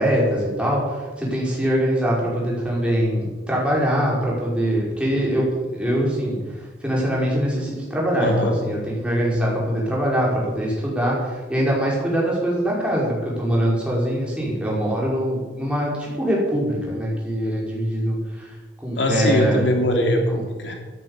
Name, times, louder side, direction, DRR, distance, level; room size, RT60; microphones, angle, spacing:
voice 1, 0.0-6.4 6.8-19.7 20.3-20.4, equal, 5° right, -4 dB, 5.5 m, -23 dB
voice 2, 8.2-8.6 19.0-20.7, left 1 dB, 80° left, 2 dB, 3.3 m, -21 dB
14.0 x 12.0 x 8.3 m, 1.3 s
head